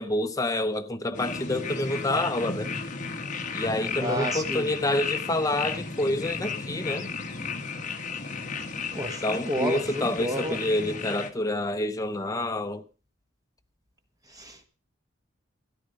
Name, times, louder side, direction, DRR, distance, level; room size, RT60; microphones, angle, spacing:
voice 1, 0.0-2.7 3.5-7.1 9.2-12.8, left 1 dB, 15° left, 0.8 m, -28 dB
sound 1, 1.1-11.3, left 4 dB, 40° left, 1.4 m, -34 dB
voice 2, 3.9-4.7 8.9-10.6 14.3-14.6, equal, 20° right, 1.4 m, -31 dB
13.5 x 10.5 x 5.3 m
head